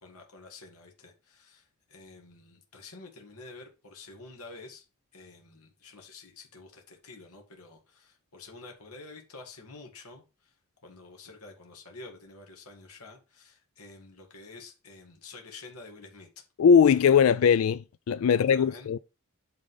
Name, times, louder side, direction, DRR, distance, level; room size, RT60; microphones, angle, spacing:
voice 1, 0.0-1.6 1.9-4.8 5.1-10.5 10.8-16.4 18.3-18.9, left 3 dB, 85° left, 2.0 m, -48 dB
voice 2, 16.6-19.0, left 7 dB, 65° left, 0.3 m, -20 dB
8.8 x 3.9 x 5.5 m
head